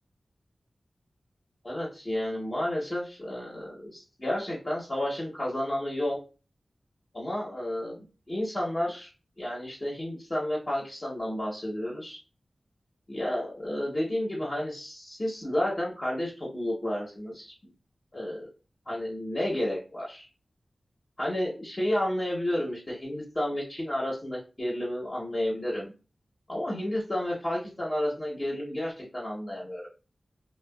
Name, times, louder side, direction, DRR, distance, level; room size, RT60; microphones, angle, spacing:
voice 1, 1.6-6.2 7.1-9.1 9.4-12.2 13.1-17.5 18.1-18.5 18.9-20.3 21.2-25.9 26.5-29.9, left 1 dB, 35° left, -6 dB, 0.8 m, -31 dB
2.7 x 2.2 x 2.3 m, 0.33 s
wide cardioid pair, 85°, 0 cm